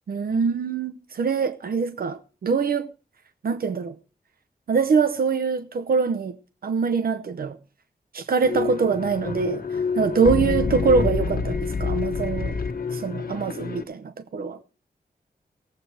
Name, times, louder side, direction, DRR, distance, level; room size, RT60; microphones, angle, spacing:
voice 1, 0.1-2.9 3.4-4.0 4.7-6.4 6.6-7.6 8.1-12.6 12.9-14.6, right 5 dB, 75° right, 0.7 m, -24 dB
sound 1, 8.4-13.8, left 4 dB, 70° left, 1.3 m, -27 dB
18.0 x 7.8 x 4.7 m
wide cardioid pair, 145°, 16 cm